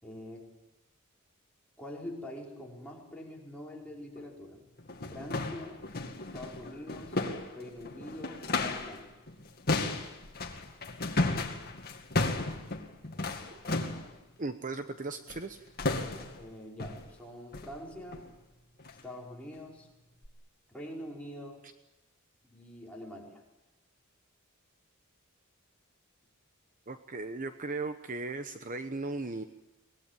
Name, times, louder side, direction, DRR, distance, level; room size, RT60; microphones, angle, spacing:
voice 1, 0.0-0.5 1.8-4.6 5.1-5.8 6.3-7.2 7.5-9.1 16.3-18.3 19.0-19.9 20.7-21.6 22.4-23.4, left 1 dB, 5° left, -3 dB, 5.0 m, -44 dB
sound 1, 4.2-4.3 4.8-9.0 9.3-14.1 15.3-15.5 15.8-16.4 16.8-17.1 17.5-17.8 18.1-18.3 18.8-19.0 19.5-19.6 20.2-20.3, left 2 dB, 45° left, 2.3 m, -34 dB
voice 2, 14.4-15.6 26.9-29.4, right 3 dB, 40° right, 8 dB, 1.0 m, -37 dB
23.5 x 20.0 x 9.1 m, 0.97 s
head